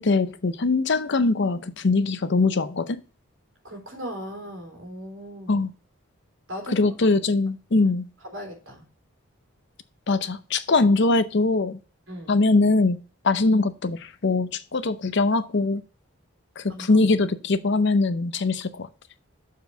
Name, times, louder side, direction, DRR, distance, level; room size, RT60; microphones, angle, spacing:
voice 1, 0.0-3.0 5.5-5.7 6.7-8.0 10.1-11.8 12.3-13.0 13.2-15.8 16.6-18.9, left 3 dB, 55° left, 0.6 m, -22 dB
voice 2, 3.6-5.7 6.5-6.9 7.7-7.9 8.2-8.9 12.1-12.4 16.7-17.0, equal, 60° right, 3.3 m, -38 dB
6.9 x 4.7 x 6.6 m
head